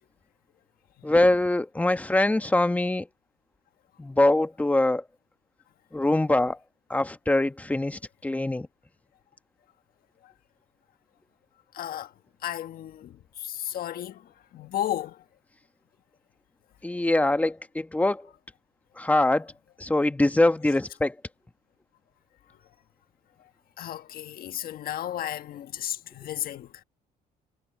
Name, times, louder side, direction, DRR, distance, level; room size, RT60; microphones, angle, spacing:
voice 1, 1.0-3.1 4.0-5.0 5.9-6.6 6.9-8.7 16.8-18.3 19.0-19.5 19.8-21.2, left 2 dB, 10° left, 1.1 m, -23 dB
voice 2, 11.7-12.1 12.4-15.2 23.8-26.8, left 11 dB, 60° left, 1.4 m, -34 dB
cardioid pair, 110°, 17 cm